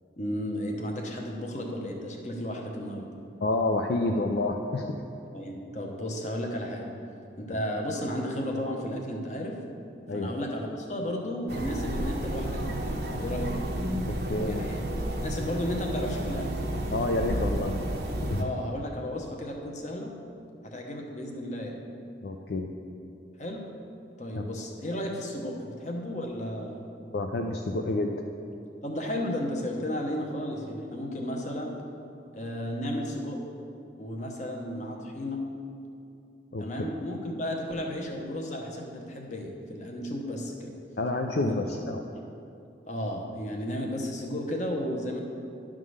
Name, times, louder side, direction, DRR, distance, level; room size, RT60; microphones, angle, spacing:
voice 1, 0.2-3.1 5.3-6.9 7.4-9.6 10.1-13.6 14.4-14.8 15.2-16.5 18.4-20.1 20.6-21.7 23.4-23.7 24.2-26.8 28.8-31.7 32.3-33.4 34.0-35.4 36.6-40.7 41.4-41.5 42.9-45.2, left 1 dB, 40° left, 1 dB, 1.0 m, -33 dB
voice 2, 3.4-4.9 10.1-10.3 14.0-14.7 16.9-17.7 18.3-18.5 22.2-22.7 24.4-24.5 27.1-28.1 36.5-36.6 41.0-42.0, left 2 dB, 60° left, 2 dB, 0.4 m, -29 dB
sound 1, 11.5-18.4, right 1 dB, 60° right, 0.8 m, -31 dB
11.0 x 3.7 x 6.4 m, 2.6 s
head